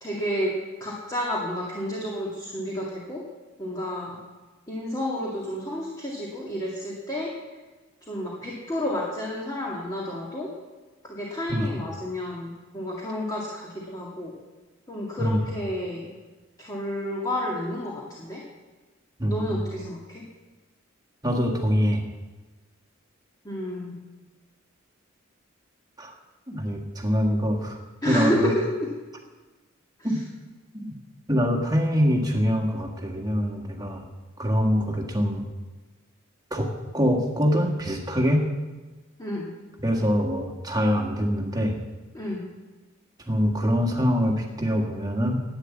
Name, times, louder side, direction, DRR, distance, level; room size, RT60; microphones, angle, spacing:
voice 1, 0.0-0.5 0.8-3.2 3.6-4.2 4.7-7.3 8.0-10.5 11.0-14.3 14.9-16.1 16.6-18.4 19.3-20.2 23.4-24.0 28.0-28.9 30.0-30.2 39.2-39.5 42.1-42.5, left 1 dB, 20° left, -4 dB, 2.1 m, -30 dB
voice 2, 19.2-19.6 21.2-22.0 26.0-26.1 26.5-27.8 28.1-28.5 30.0-30.2 30.7-30.9 31.3-34.0 34.4-35.5 36.5-36.7 36.9-38.4 39.8-41.8 43.3-45.4, equal, 20° right, 1 dB, 1.8 m, -24 dB
11.5 x 9.3 x 8.5 m, 1.2 s
head